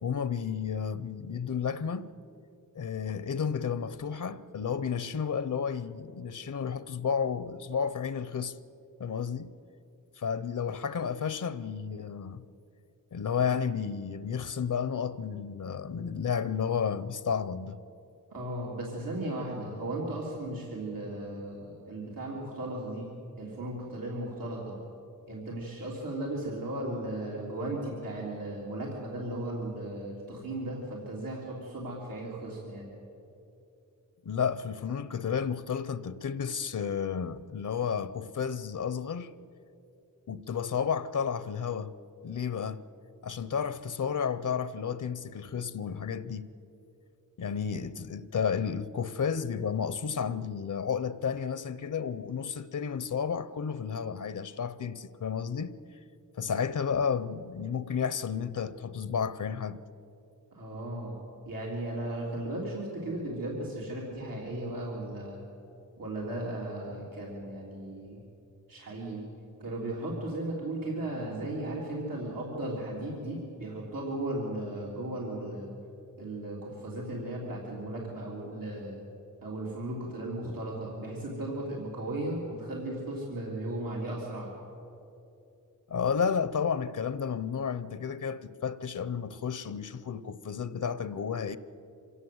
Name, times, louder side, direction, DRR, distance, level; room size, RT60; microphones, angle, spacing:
voice 1, 0.0-2.1 2.8-8.6 9.0-9.5 10.2-12.4 13.1-17.8 34.2-39.3 40.3-41.9 42.2-42.8 43.2-46.5 47.4-55.7 56.4-59.8 85.9-91.6, left 7 dB, 70° left, 0.8 m, -32 dB
voice 2, 18.3-23.1 23.4-24.8 25.3-32.9 60.5-61.2 61.5-65.4 66.0-68.2 68.7-69.2 69.6-75.7 76.2-79.0 79.4-84.5, right 1 dB, 85° right, 3.7 m, -36 dB
25.5 x 17.0 x 8.0 m
wide cardioid pair, 115°, 33 cm